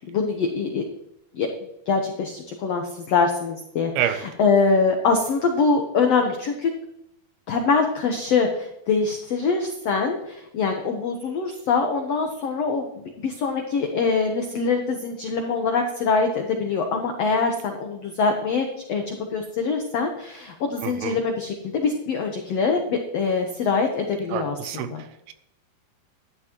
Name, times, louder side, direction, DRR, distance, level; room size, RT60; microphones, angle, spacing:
voice 1, 0.1-0.8 1.3-1.5 1.9-6.7 7.5-25.0, left 4 dB, 85° left, 3 dB, 1.4 m, -24 dB
voice 2, 20.8-21.2 24.3-25.3, right 10 dB, 80° right, 11 dB, 2.6 m, -28 dB
12.0 x 11.0 x 3.0 m, 0.81 s
omnidirectional pair, 4.4 m